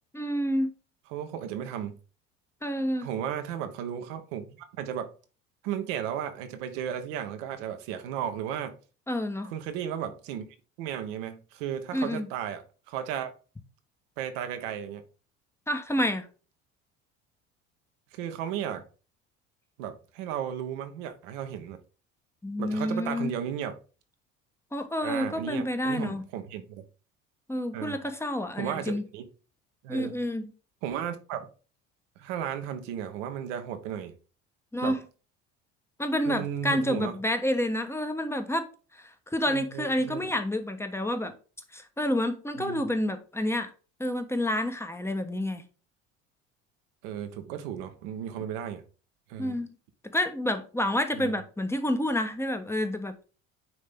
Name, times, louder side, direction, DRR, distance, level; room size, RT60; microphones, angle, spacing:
voice 1, 0.1-0.7 2.6-3.1 9.1-9.5 11.9-12.3 15.7-16.3 22.4-23.3 24.7-26.2 27.5-29.0 29.9-30.4 34.7-35.0 36.0-38.6 38.9-41.3 41.7-43.7 44.0-45.6 49.4-49.7 50.0-53.3, left 1 dB, 5° left, 1.1 m, -29 dB
voice 2, 1.1-2.0 3.0-5.1 5.6-8.7 9.4-10.4 10.8-12.6 12.9-13.3 14.2-15.0 18.1-18.8 19.8-21.8 22.6-23.7 25.0-26.8 27.7-28.0 28.6-29.2 29.8-30.2 30.8-31.5 32.2-34.1 34.8-35.0 36.2-37.1 39.5-40.3 42.6-42.8 47.0-48.8 49.3-49.5 51.1-51.3, right 9 dB, 70° right, 1.2 m, -34 dB
9.3 x 3.2 x 3.6 m
hypercardioid pair, 65°, 38 cm